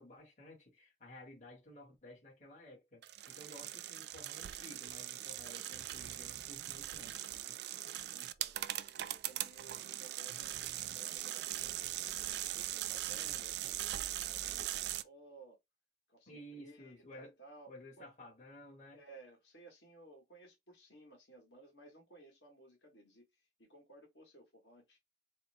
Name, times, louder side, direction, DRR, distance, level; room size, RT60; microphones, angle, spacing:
voice 1, 0.0-7.2 16.3-17.3 17.7-19.0, left 1 dB, 40° left, 1.7 m, -54 dB
sound 1, 3.0-15.0, right 13 dB, 60° right, 0.3 m, -41 dB
voice 2, 8.1-13.9 14.2-15.6 16.1-17.7 18.0-18.1 18.9-25.0, right 2 dB, 65° left, 1.6 m, -58 dB
4.2 x 2.0 x 4.1 m
head